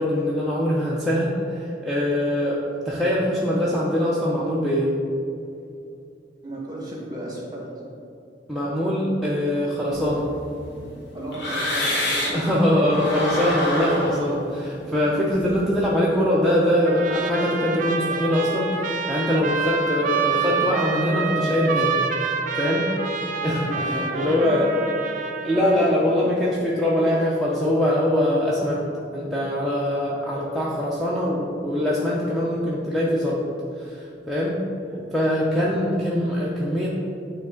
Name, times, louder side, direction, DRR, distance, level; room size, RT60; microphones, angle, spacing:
voice 1, 0.0-4.9 8.5-10.2 12.3-22.0 22.5-22.9 23.4-23.7 24.1-24.7 25.4-28.9 29.1-33.4 33.8-34.6 35.1-36.9, left 1 dB, ahead, -7 dB, 0.6 m, -23 dB
voice 2, 6.4-7.7 9.7-10.0 10.5-10.6 10.8-12.4 12.8-13.0 23.4-24.8 25.5-26.3 34.9-35.1 35.6-35.8, right 1 dB, 25° right, -3 dB, 1.4 m, -35 dB
sound 1, 9.9-12.5 12.8-15.9, left 1 dB, 85° left, 1.3 m, -28 dB
Trumpet, 16.9-26.0, right 5 dB, 45° right, 0.4 m, -27 dB
9.2 x 3.2 x 3.8 m, 2.6 s
head